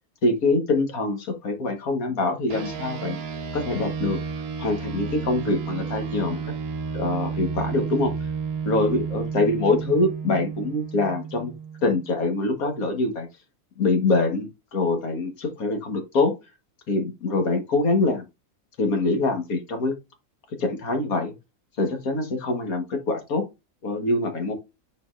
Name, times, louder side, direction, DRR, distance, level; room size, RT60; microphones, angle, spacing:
voice 1, 0.2-3.2 3.5-4.2 4.6-6.4 6.9-8.1 8.7-11.5 11.8-13.3 13.8-16.3 16.9-18.2 18.8-19.9 20.6-21.3 21.8-23.4 23.8-24.5, left 2 dB, 85° left, 5 dB, 1.9 m, -24 dB
sound 1, 2.5-12.2, right 6 dB, 55° right, 0.9 m, -32 dB
9.4 x 4.2 x 2.5 m, 0.24 s
omnidirectional pair, 1.5 m